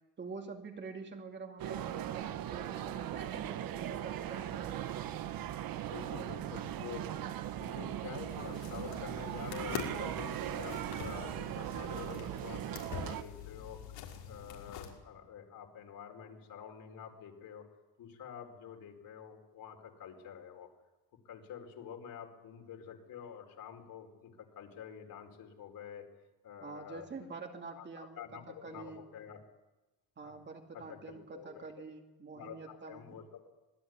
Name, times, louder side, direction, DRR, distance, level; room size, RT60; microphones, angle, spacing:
voice 1, 0.2-4.9 26.6-29.0 30.2-33.2, right 4 dB, 25° right, 2 dB, 2.5 m, -46 dB
sound 1, 1.6-13.2, right 11 dB, 50° right, 1.4 m, -39 dB
voice 2, 5.9-7.3 7.6-14.0 14.3-17.6 18.0-20.7 21.2-26.1 26.4-27.1 27.8-29.4 30.2-30.4 30.7-31.8 32.3-33.5, left 8 dB, 50° left, 4 dB, 4.7 m, -48 dB
sound 2, 8.3-14.9, left 8 dB, 75° left, 6.0 m, -46 dB
26.0 x 21.0 x 9.6 m, 1.1 s
cardioid pair, 175°, 44 cm